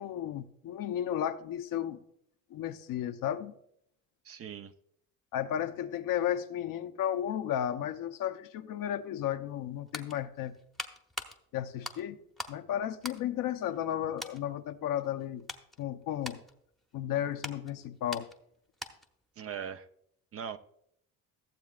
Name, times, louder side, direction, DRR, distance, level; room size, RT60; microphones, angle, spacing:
voice 1, 0.0-2.0 2.5-3.5 5.3-10.5 11.5-12.2 12.5-15.4 15.8-16.4 16.9-18.3, left 10 dB, 65° left, 9 dB, 0.8 m, -33 dB
voice 2, 4.2-4.7 19.4-19.8 20.3-20.6, right 7 dB, 40° right, 11 dB, 0.6 m, -40 dB
sound 1, 9.5-12.6 12.9-13.9 14.2-14.4 15.0-19.2 19.5-19.7, left 1 dB, ahead, 0.9 m, -44 dB
14.5 x 7.3 x 2.4 m, 0.71 s
supercardioid pair, 80°, 36 cm